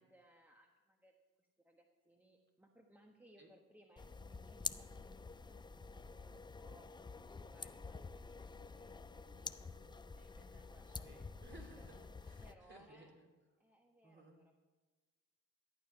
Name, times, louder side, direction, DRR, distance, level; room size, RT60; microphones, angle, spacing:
voice 1, 0.0-5.6 6.0-11.3 11.8-11.9 12.4-13.1 13.6-14.5, equal, 5° right, 2 dB, 1.2 m, -67 dB
sound 1, 4.0-12.5, left 4 dB, 15° left, 0.4 m, -49 dB
voice 2, 10.9-13.3 14.0-14.4, right 2 dB, 40° right, 1 dB, 2.9 m, -60 dB
13.0 x 9.2 x 5.6 m, 1.2 s
cardioid pair, 90°, 30 cm